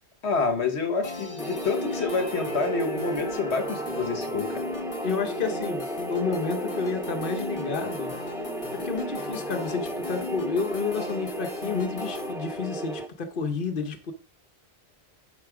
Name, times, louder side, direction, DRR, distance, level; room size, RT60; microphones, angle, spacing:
voice 1, 0.2-4.6, left 4 dB, 75° left, 1.4 m, -28 dB
sound 1, 1.0-12.3, left 2 dB, 35° left, 0.9 m, -38 dB
sound 2, 1.4-13.1, right 1 dB, 5° right, 0.4 m, -34 dB
voice 2, 5.0-8.1 8.7-14.1, left 5 dB, 55° left, 1.2 m, -30 dB
10.5 x 4.1 x 4.9 m
omnidirectional pair, 1.1 m